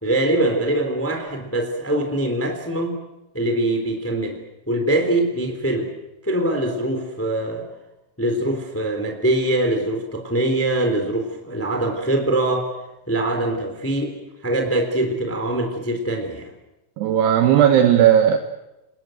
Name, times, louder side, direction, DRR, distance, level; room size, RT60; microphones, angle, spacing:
voice 1, 0.0-3.0 3.3-4.4 4.7-5.9 6.2-7.6 8.2-12.7 13.1-16.5, right 1 dB, 5° left, 4 dB, 2.4 m, -23 dB
voice 2, 17.0-18.4, right 10 dB, 70° right, 6 dB, 2.9 m, -15 dB
29.0 x 19.5 x 7.9 m, 0.98 s
omnidirectional pair, 5.6 m